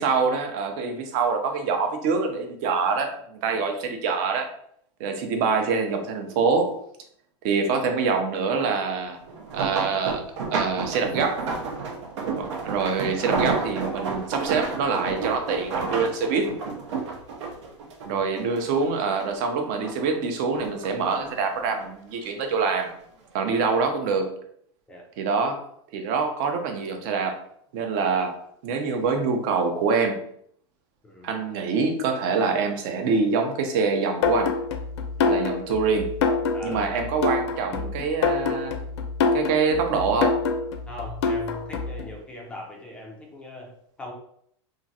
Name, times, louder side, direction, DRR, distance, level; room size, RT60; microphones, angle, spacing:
voice 1, 0.0-4.5 5.0-6.8 7.4-9.2 9.5-10.3 10.5-11.5 12.4-16.5 18.1-22.9 23.3-24.3 25.2-25.6 25.9-27.4 27.7-28.4 28.6-30.2 31.2-34.5 35.3-36.2 36.6-38.8 39.3-40.4, right 5 dB, 45° right, 5 dB, 0.5 m, -25 dB
sound 1, 9.3-18.9 19.2-20.2 20.5-21.9 22.6-22.9 23.3-23.4, right 4 dB, 80° right, 0.7 m, -31 dB
sound 2, 34.2-42.0, left 4 dB, 70° left, 0.5 m, -25 dB
voice 2, 36.5-37.1 40.9-44.1, left 2 dB, 5° left, -2 dB, 0.4 m, -40 dB
2.9 x 2.5 x 2.6 m, 0.67 s
supercardioid pair, 160°, 15 cm